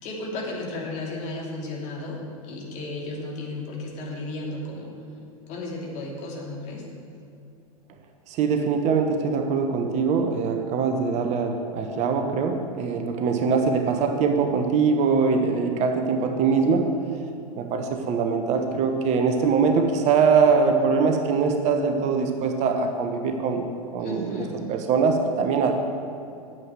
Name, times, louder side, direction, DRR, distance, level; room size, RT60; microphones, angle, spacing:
voice 1, 0.0-4.9 5.5-6.8 24.0-24.6, left 2 dB, 40° left, -2 dB, 2.8 m, -34 dB
voice 2, 8.3-16.9 17.5-23.7 23.9-25.7, right 5 dB, 40° right, 5 dB, 1.1 m, -22 dB
9.5 x 7.6 x 7.6 m, 2.6 s
figure-of-eight pair, 95°, 19 cm